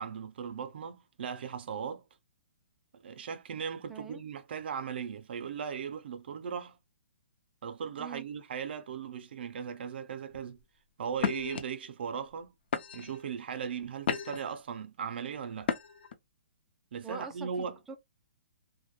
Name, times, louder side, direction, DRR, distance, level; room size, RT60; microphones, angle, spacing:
voice 1, 0.0-2.0 2.9-6.8 7.6-10.6 11.0-12.5 12.9-15.7 16.9-17.8, right 7 dB, 65° right, 0.4 m, -38 dB
voice 2, 3.9-4.2 8.0-8.3 17.0-17.9, right 5 dB, 5° right, 0.4 m, -43 dB
sound 1, 10.3-10.6 11.2-11.6 12.3-12.4 12.7-13.2 13.7-14.5 15.6-16.1, left 7 dB, 60° left, 0.5 m, -33 dB
2.2 x 2.1 x 3.0 m
hypercardioid pair, 140°, 6 cm